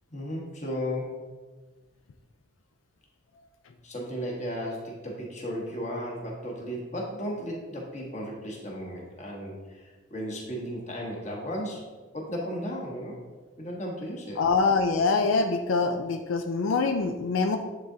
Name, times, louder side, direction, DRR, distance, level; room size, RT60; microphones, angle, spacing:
voice 1, 0.1-1.2 3.8-13.2 13.6-14.4, equal, 35° left, -2 dB, 1.2 m, -35 dB
voice 2, 14.4-17.6, left 4 dB, 85° left, 5 dB, 0.4 m, -24 dB
9.7 x 3.8 x 2.7 m, 1.3 s
head